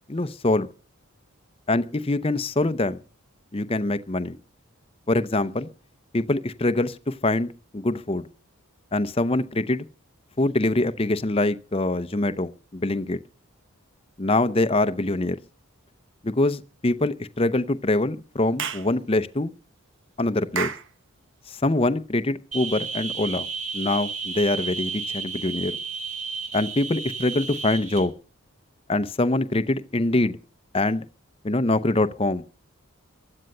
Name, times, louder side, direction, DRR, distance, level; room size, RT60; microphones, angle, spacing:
voice 1, 0.1-0.7 1.7-3.0 3.5-4.4 5.1-5.7 6.1-8.2 8.9-9.8 10.4-13.2 14.2-15.4 16.2-19.5 20.2-20.7 21.5-23.5 23.7-25.7 26.5-28.1 28.9-30.4 30.7-31.0 31.4-32.4, left 2 dB, 25° left, 0.7 m, -24 dB
Clapping / Chirp tweet, 18.6-18.9 20.5-20.9, right 7 dB, 55° right, 1.3 m, -29 dB
sound 1, 22.5-28.0, right 5 dB, 35° right, 4.6 m, -32 dB
15.5 x 11.0 x 6.6 m
head